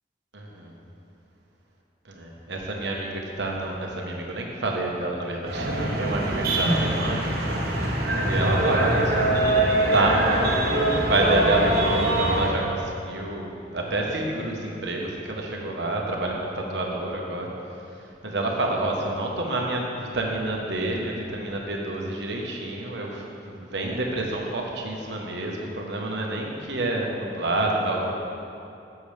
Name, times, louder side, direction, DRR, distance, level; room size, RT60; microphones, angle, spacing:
voice 1, 0.3-0.7 2.0-7.3 7.8-7.9 8.2-17.5 18.2-28.1, right 2 dB, 80° right, -1 dB, 1.2 m, -28 dB
sound 1, 5.5-12.5, right 1 dB, 55° right, 1.2 m, -23 dB
10.5 x 7.0 x 3.4 m, 2.6 s
head